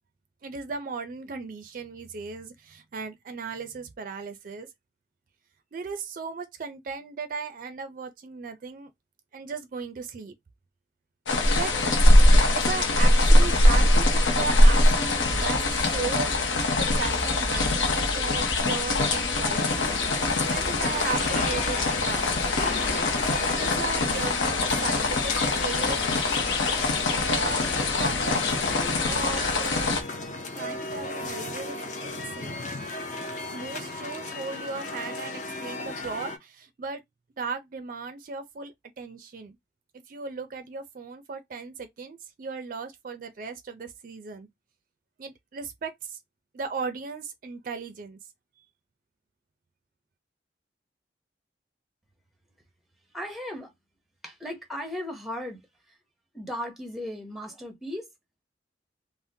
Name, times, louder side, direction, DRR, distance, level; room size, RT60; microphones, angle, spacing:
voice 1, 0.4-4.7 5.7-8.9 9.3-10.3 11.5-11.7 12.5-16.3 16.7-19.9 20.5-22.3 23.4-26.0 27.2-30.0 30.6-32.6 33.5-37.0 37.4-39.6 40.1-44.5 45.2-46.2 46.5-48.2, right 4 dB, 45° right, 0.4 m, -36 dB
sound 1, 11.3-30.0, left 1 dB, 90° left, 0.7 m, -22 dB
sound 2, 19.5-36.4, left 2 dB, 40° left, 0.5 m, -35 dB
voice 2, 53.1-53.7 54.2-55.9 56.3-58.1, left 1 dB, ahead, 0.6 m, -36 dB
3.5 x 2.0 x 2.6 m
head